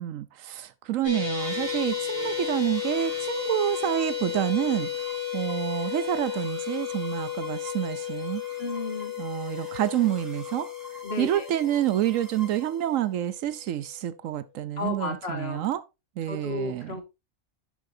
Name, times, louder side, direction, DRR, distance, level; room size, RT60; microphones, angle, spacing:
voice 1, 0.0-5.1 5.3-8.4 9.2-15.8 16.2-17.0, right 12 dB, 75° right, 1.0 m, -28 dB
sound 1, 1.0-13.4, left 9 dB, 20° left, 4.4 m, -33 dB
sound 2, 1.4-13.2, left 2 dB, ahead, 4.1 m, -46 dB
voice 2, 8.6-9.1 11.0-11.4 14.8-15.7 16.3-17.0, left 3 dB, 50° left, 1.9 m, -33 dB
10.5 x 7.5 x 2.6 m
omnidirectional pair, 1.4 m